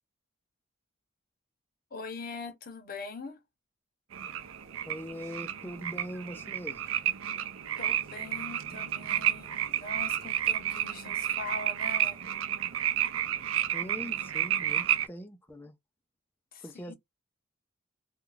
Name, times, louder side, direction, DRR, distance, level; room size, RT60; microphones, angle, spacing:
voice 1, 1.9-3.4 7.8-12.2 16.5-16.7, left 3 dB, 45° left, 0.7 m, -42 dB
sound 1, 4.1-15.1, right 11 dB, 80° right, 0.4 m, -31 dB
voice 2, 4.9-6.8 13.7-15.7 16.6-16.9, equal, 10° left, 0.4 m, -42 dB
2.4 x 2.2 x 3.1 m
head